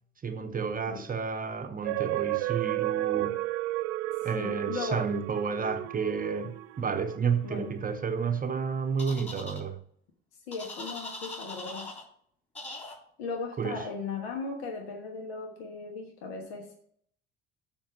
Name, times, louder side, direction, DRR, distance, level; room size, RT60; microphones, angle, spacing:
voice 1, 0.2-3.4 4.2-9.8 13.6-13.9, right 6 dB, 25° right, 0.8 m, -31 dB
sound 1, 1.8-7.5 8.0-8.1, right 18 dB, 70° right, 0.5 m, -32 dB
voice 2, 4.4-5.2 7.4-7.7 10.5-11.9 13.2-16.7, left 4 dB, 75° left, 1.3 m, -37 dB
sound 2, 9.0-9.6 10.5-12.0 12.6-13.0, left 2 dB, 20° left, 3.1 m, -41 dB
7.1 x 5.1 x 6.0 m
hypercardioid pair, 65°, 31 cm